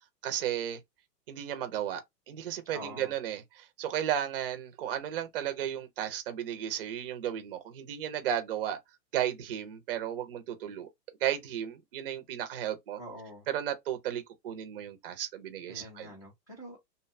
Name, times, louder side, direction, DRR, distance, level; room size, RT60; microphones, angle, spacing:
voice 1, 0.2-0.8 1.3-8.8 9.1-10.9 11.2-13.0 13.5-16.1, right 10 dB, 40° right, 0.4 m, -34 dB
voice 2, 2.7-3.1 13.0-13.5 15.7-16.9, equal, 25° left, 0.4 m, -45 dB
2.6 x 2.1 x 2.4 m
hypercardioid pair, 155°, 50 cm